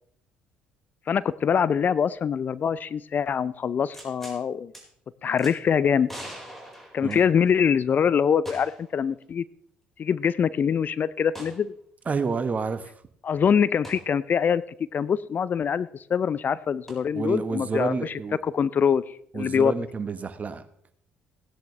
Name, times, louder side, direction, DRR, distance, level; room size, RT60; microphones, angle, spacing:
voice 1, 1.1-4.7 5.2-6.1 6.9-9.4 10.0-11.7 13.2-14.6 14.9-19.7, left 7 dB, 45° left, 18 dB, 0.5 m, -24 dB
sound 1, 3.9-4.4 4.7-4.8 5.4-5.5 6.1-7.6 8.5-8.9 9.2-9.3 11.3-11.6 13.8-14.0 16.9-17.0, equal, 5° left, 4.6 m, -42 dB
voice 2, 12.1-12.9 17.1-18.4 19.3-20.6, right 4 dB, 35° right, 11 dB, 1.2 m, -29 dB
16.5 x 10.5 x 3.2 m, 0.65 s
hypercardioid pair, 55°, 4 cm